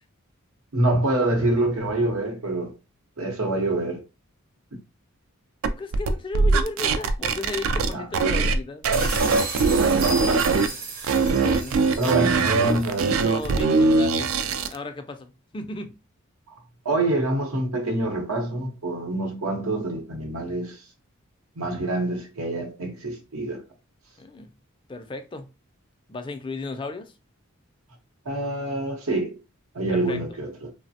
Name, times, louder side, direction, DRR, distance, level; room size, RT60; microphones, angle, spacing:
voice 1, 0.7-2.8 3.2-4.0 7.9-8.1 12.0-13.4 16.5-16.6 16.8-20.9 21.5-23.6 28.2-29.4 29.7-30.7, right 2 dB, 85° right, 0.9 m, -26 dB
sound 1, 5.6-8.6 8.8-10.7 11.0-14.8, right 4 dB, 70° right, 0.3 m, -21 dB
voice 2, 5.7-8.8 11.4-11.7 13.2-14.3 14.7-15.9 24.2-24.5 24.9-25.5 26.1-27.1 29.9-30.2, left 3 dB, 25° left, 0.3 m, -35 dB
sound 2, 8.9-13.6, right 3 dB, 40° right, 0.7 m, -34 dB
3.1 x 2.1 x 2.6 m
head